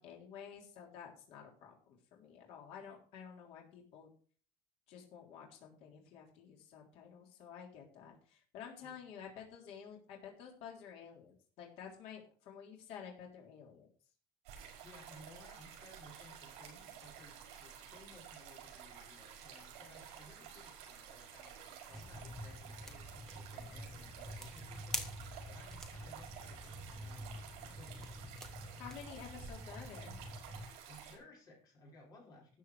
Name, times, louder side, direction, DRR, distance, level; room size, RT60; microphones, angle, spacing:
voice 1, 0.0-1.8 2.1-4.1 4.9-13.9 28.8-30.2, left 7 dB, 55° left, 0 dB, 3.5 m, -51 dB
sound 1, 14.5-31.2, right 8 dB, 65° right, 5.3 m, -52 dB
voice 2, 14.8-25.1 25.5-28.2 30.9-32.6, left 1 dB, 35° left, -1 dB, 5.2 m, -59 dB
sound 2, 21.9-30.7, equal, 5° left, 1.3 m, -47 dB
13.0 x 8.4 x 4.9 m, 0.43 s
cardioid pair, 175°, 12 cm